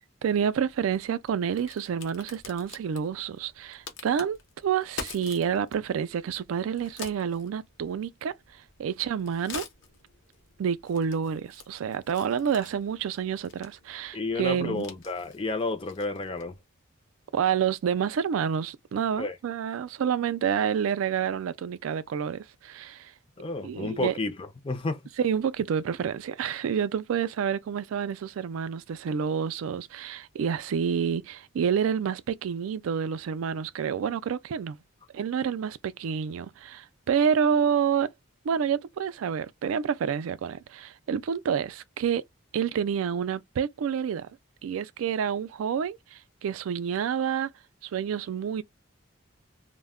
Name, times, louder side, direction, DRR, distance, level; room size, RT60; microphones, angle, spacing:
voice 1, 0.2-8.4 8.8-9.7 10.6-14.8 17.3-23.1 23.6-24.1 25.2-34.8 35.1-38.1 38.4-42.2 42.5-44.3 44.6-47.5 47.8-48.6, right 7 dB, 85° right, 0.3 m, -28 dB
Crack, 0.5-16.6, left 5 dB, 60° left, 0.7 m, -47 dB
voice 2, 14.1-16.6 19.2-19.4 23.4-25.0, left 3 dB, 25° left, 0.4 m, -31 dB
2.1 x 2.1 x 3.5 m
head